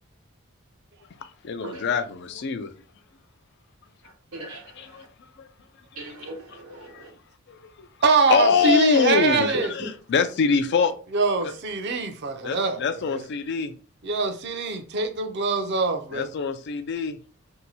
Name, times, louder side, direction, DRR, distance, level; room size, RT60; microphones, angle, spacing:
voice 1, 1.4-2.7 4.7-5.0 5.4-5.5 6.7-7.0 7.5-7.7 8.3-10.9 11.4-11.5 12.4-13.7 16.1-17.2, left 5 dB, 55° left, 0.4 m, -24 dB
voice 2, 4.3-5.1 6.0-7.1, right 2 dB, 90° right, 1.1 m, -40 dB
voice 3, 8.0-9.7 11.1-13.2 14.0-16.3, right 3 dB, 50° right, 0.5 m, -24 dB
2.8 x 2.2 x 4.0 m
head